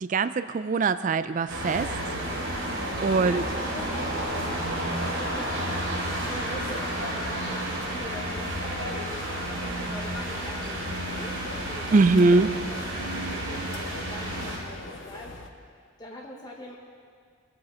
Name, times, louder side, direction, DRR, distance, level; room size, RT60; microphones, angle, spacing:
voice 1, 0.0-1.9 3.0-3.4 11.9-12.5, right 3 dB, 40° right, 13 dB, 0.3 m, -22 dB
sound 1, 1.5-14.6, right 1 dB, 80° right, 3.2 m, -31 dB
voice 2, 3.2-15.3 16.0-16.8, left 1 dB, 20° left, -1 dB, 0.9 m, -43 dB
sound 2, 4.4-15.5, left 2 dB, 65° left, 0.9 m, -43 dB
21.5 x 7.7 x 4.3 m, 2.1 s
head